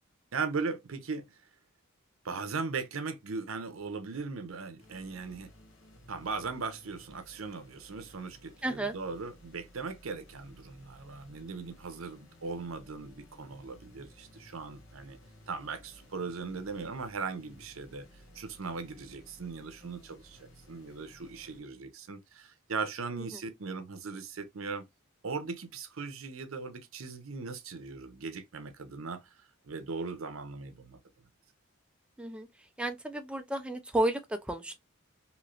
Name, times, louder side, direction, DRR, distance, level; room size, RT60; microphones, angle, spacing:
voice 1, 0.3-1.4 2.2-5.5 6.1-15.2 15.5-18.1 18.3-24.8 25.2-29.2 29.7-31.0, right 4 dB, 75° right, 0.6 m, -38 dB
sound 1, 4.8-21.6, equal, 65° left, 1.0 m, -57 dB
voice 2, 8.6-8.9 23.3-23.4 32.2-32.5 32.8-34.8, right 1 dB, 5° right, 0.3 m, -32 dB
3.1 x 2.8 x 2.3 m
head